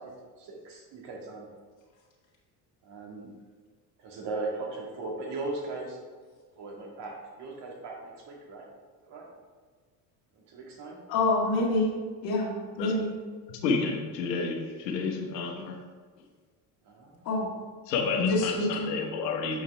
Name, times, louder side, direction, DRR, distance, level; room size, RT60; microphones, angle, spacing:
voice 1, 0.0-1.5 2.8-3.3 4.0-6.0 6.6-8.7 9.0-9.3 10.5-11.0 16.9-17.4, right 3 dB, 60° right, -1 dB, 1.9 m, -38 dB
voice 2, 11.1-11.9 12.2-13.1 17.3-17.4 18.2-18.9, left 2 dB, 65° left, -5 dB, 1.9 m, -26 dB
voice 3, 13.5-15.7 17.9-19.6, left 4 dB, 85° left, 1 dB, 1.2 m, -30 dB
7.1 x 5.6 x 3.5 m, 1.5 s
hypercardioid pair, 70°, 48 cm